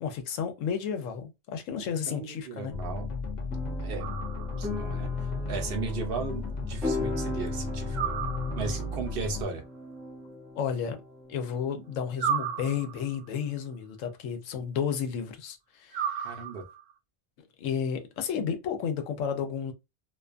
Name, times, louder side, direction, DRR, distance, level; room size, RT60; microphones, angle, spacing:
voice 1, 0.0-2.7 10.6-11.0 11.3-16.3 17.6-19.7, left 7 dB, 90° left, 1.0 m, -32 dB
voice 2, 2.1-3.1 3.8-4.1 4.6-8.0 8.6-9.6 16.1-16.6, right 4 dB, 60° right, 0.7 m, -36 dB
sound 1, 2.7-9.4, left 3 dB, 65° left, 0.4 m, -34 dB
sound 2, 3.5-13.2, left 2 dB, ahead, 0.3 m, -39 dB
sound 3, 4.0-4.8 7.9-9.0 12.2-13.3 15.9-16.9, right 8 dB, 85° right, 0.9 m, -33 dB
2.5 x 2.2 x 2.4 m
omnidirectional pair, 1.3 m